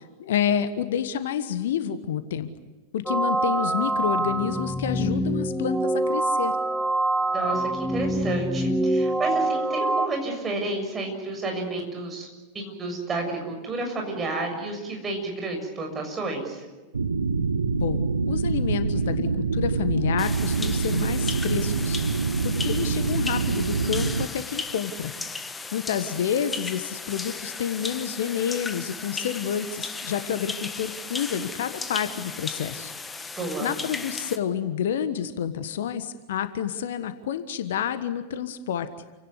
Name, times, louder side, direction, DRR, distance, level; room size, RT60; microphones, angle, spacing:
voice 1, 0.0-2.5 2.9-6.5 17.7-25.1 25.7-32.9 33.6-38.9, left 9 dB, 60° left, 12 dB, 1.3 m, -29 dB
sound 1, 3.1-10.1, right 1 dB, 5° right, 1.2 m, -25 dB
voice 2, 7.3-12.3 12.5-16.7 33.4-33.7, right 2 dB, 20° right, 2 dB, 6.9 m, -30 dB
sound 2, 16.9-24.3, right 4 dB, 75° right, 1.0 m, -25 dB
sound 3, 20.2-34.4, left 4 dB, 15° left, 1.5 m, -36 dB
28.5 x 17.5 x 9.7 m, 1.2 s
figure-of-eight pair, 90°, 0 cm